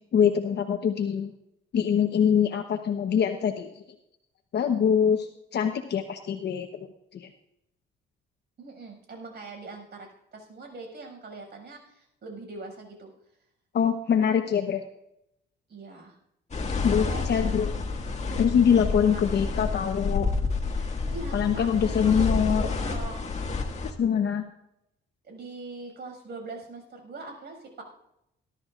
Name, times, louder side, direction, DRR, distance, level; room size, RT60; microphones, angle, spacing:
voice 1, 0.1-1.3 1.7-3.7 4.5-7.3 13.7-14.8 16.8-17.7 18.4-20.3 21.3-22.7 23.8-24.4, left 7 dB, 60° left, 5 dB, 1.0 m, -24 dB
voice 2, 8.6-13.1 15.7-16.2 17.0-17.5 19.0-19.7 20.7-23.2 25.2-27.8, right 3 dB, 55° right, 2 dB, 6.3 m, -42 dB
sound 1, 16.5-23.9, left 3 dB, 35° left, 2.0 m, -29 dB
20.0 x 12.5 x 2.5 m, 0.81 s
cardioid pair, 90°, 20 cm